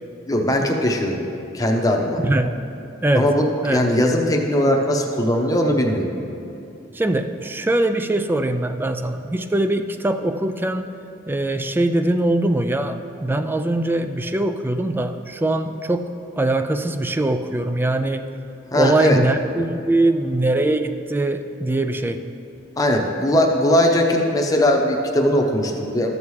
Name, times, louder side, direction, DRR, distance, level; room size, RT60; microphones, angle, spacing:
voice 1, 0.3-1.2 1.5-2.2 3.2-6.1 18.7-19.2 22.8-26.1, left 1 dB, 20° left, 1 dB, 0.8 m, -19 dB
voice 2, 2.1-2.5 3.0-3.3 3.6-3.8 6.9-10.9 11.3-16.1 16.4-18.2 18.7-22.2, right 2 dB, 10° right, 8 dB, 0.3 m, -22 dB
13.5 x 7.0 x 3.2 m, 2.6 s
head